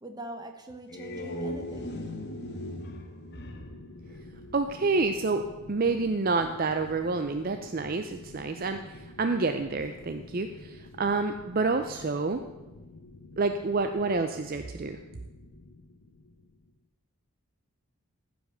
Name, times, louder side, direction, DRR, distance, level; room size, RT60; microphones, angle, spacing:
voice 1, 0.0-2.0, right 1 dB, 20° right, 5 dB, 1.0 m, -43 dB
sound 1, 0.7-4.9, left 1 dB, 50° left, 1.1 m, -38 dB
sound 2, 3.4-16.8, left 2 dB, 80° left, 0.8 m, -49 dB
voice 2, 4.5-5.4 5.7-12.4 13.4-15.0, right 3 dB, 40° right, 7 dB, 0.5 m, -28 dB
15.0 x 5.2 x 6.7 m, 1.1 s
head